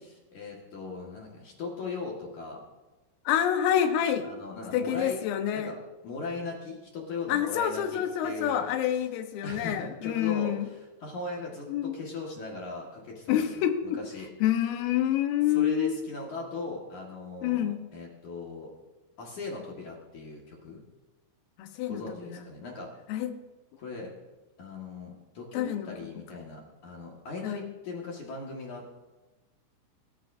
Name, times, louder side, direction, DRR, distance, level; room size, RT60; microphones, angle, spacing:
voice 1, 0.3-2.6 4.2-5.2 5.5-5.8 6.0-8.7 9.4-14.3 15.5-18.7 19.2-20.8 21.9-22.9 23.8-24.1 24.6-28.8, left 3 dB, 55° left, -2 dB, 2.3 m, -39 dB
voice 2, 3.3-4.3 4.7-5.7 7.3-10.7 11.7-12.0 13.3-14.0 14.4-16.0 17.4-17.8 21.6-22.4 23.1-23.3 25.5-25.9 26.3-26.5 27.4-27.6, left 10 dB, 90° left, 7 dB, 3.8 m, -27 dB
28.5 x 13.5 x 2.7 m, 1.2 s
omnidirectional pair, 5.8 m